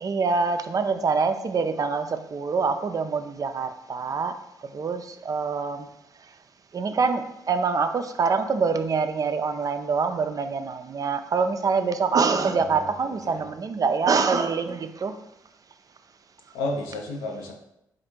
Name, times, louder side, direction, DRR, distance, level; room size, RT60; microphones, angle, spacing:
voice 1, 0.0-4.4 4.7-5.9 6.7-15.2, right 5 dB, 40° right, 8 dB, 0.4 m, -25 dB
voice 2, 12.5-13.5 16.5-17.5, left 2 dB, 80° left, 1 dB, 0.7 m, -33 dB
4.1 x 2.5 x 4.4 m, 0.82 s
hypercardioid pair, 40°, 9 cm